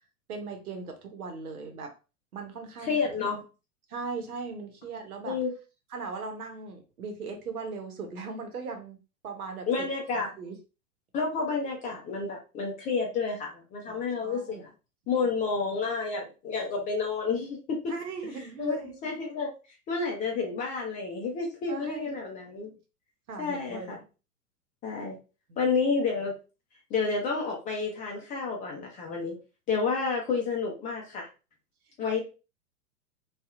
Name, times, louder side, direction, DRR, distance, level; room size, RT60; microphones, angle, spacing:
voice 1, 0.3-1.9 2.3-2.9 3.9-5.4 5.9-9.0 9.2-9.7 10.4-10.6 13.9-14.6 17.9-19.0 21.7-22.1 23.3-24.0 25.5-25.7, right 4 dB, 70° right, 4 dB, 0.9 m, -38 dB
voice 2, 2.8-3.4 5.3-5.5 9.7-10.3 11.1-14.7 15.1-17.8 18.6-19.5 19.9-22.7 23.4-24.0 24.8-25.2 25.6-26.3 26.9-29.4 29.7-31.3 32.0-32.2, left 4 dB, 20° left, 0 dB, 0.5 m, -30 dB
2.7 x 2.4 x 2.4 m, 0.32 s
figure-of-eight pair, 100°, 45 cm